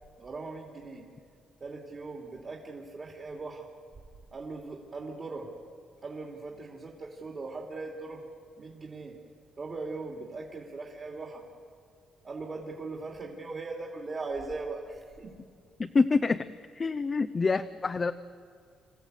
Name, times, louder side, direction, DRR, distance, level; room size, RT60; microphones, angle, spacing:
voice 1, 0.2-1.1 1.6-3.6 4.3-5.5 6.0-8.2 8.6-9.2 9.6-11.4 12.2-15.4, right 3 dB, 40° right, -1 dB, 3.0 m, -39 dB
voice 2, 15.8-16.5 16.7-18.1, left 4 dB, 35° left, 8 dB, 0.7 m, -26 dB
26.5 x 15.0 x 8.2 m, 2.3 s
cardioid pair, 90°, 0 cm